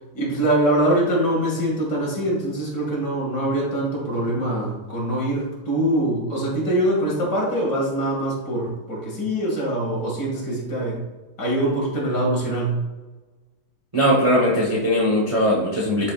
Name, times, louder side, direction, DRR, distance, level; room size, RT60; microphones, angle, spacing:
voice 1, 0.1-11.0 11.4-12.8, right 1 dB, 55° left, -4 dB, 2.8 m, -23 dB
voice 2, 13.9-16.1, equal, 20° right, -4 dB, 1.0 m, -19 dB
11.0 x 4.8 x 2.4 m, 1.2 s
omnidirectional pair, 2.2 m